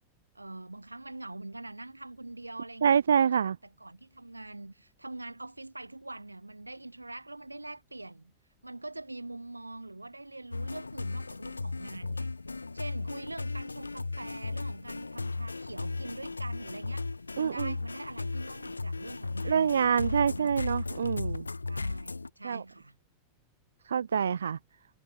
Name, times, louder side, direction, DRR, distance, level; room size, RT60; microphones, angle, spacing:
voice 1, 0.4-8.3 8.6-12.3 12.7-17.1 17.4-20.7 21.6-23.0, right 2 dB, 85° right, 6.7 m, -44 dB
voice 2, 2.8-3.5 17.4-17.7 19.4-21.5 22.4-22.6 23.8-24.6, right 7 dB, 70° right, 1.3 m, -26 dB
sound 1, 10.5-22.3, left 3 dB, 80° left, 2.7 m, -36 dB
figure-of-eight pair, 90°, 0 cm